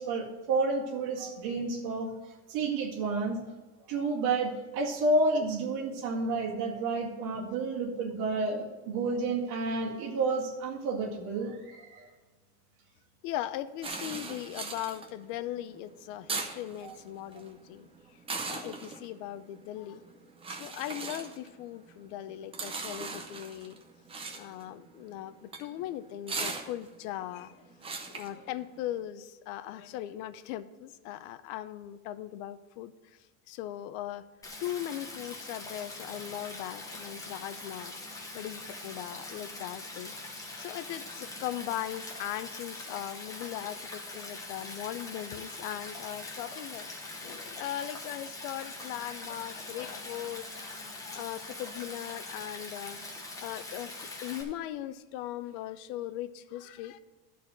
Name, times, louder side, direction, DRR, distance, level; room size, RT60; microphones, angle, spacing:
voice 1, 0.0-2.1 2.5-3.4 3.9-12.1 16.8-16.9, right 3 dB, 50° right, -3 dB, 2.0 m, -30 dB
voice 2, 13.2-17.9 18.4-20.0 20.5-23.8 24.3-27.7 28.0-33.2 33.5-34.2 34.6-40.1 40.6-46.9 47.1-53.0 53.4-57.0, left 12 dB, 65° left, 13 dB, 0.7 m, -39 dB
sound 1, 13.8-29.0, right 4 dB, 15° right, 0.6 m, -40 dB
Stream, 34.4-54.4, left 2 dB, 10° left, 1.0 m, -43 dB
12.0 x 4.3 x 7.3 m, 1.3 s
cardioid pair, 175°, 42 cm